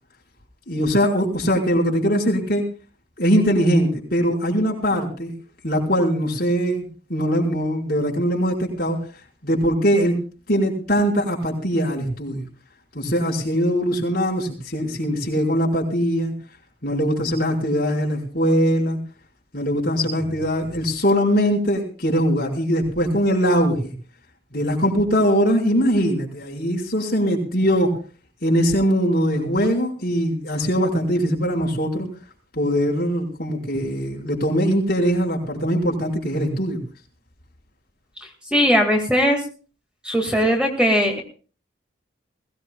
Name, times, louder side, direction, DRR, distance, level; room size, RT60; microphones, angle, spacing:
voice 1, 0.7-2.6 3.2-5.3 5.6-9.0 9.4-10.1 10.5-12.4 12.9-16.3 16.8-19.0 19.5-23.9 24.5-27.9 28.4-32.1 32.5-36.8, equal, 50° left, -2 dB, 5.1 m, -21 dB
voice 2, 38.2-39.4 40.0-41.2, equal, 5° right, 1 dB, 2.2 m, -19 dB
21.5 x 17.0 x 2.4 m, 0.38 s
head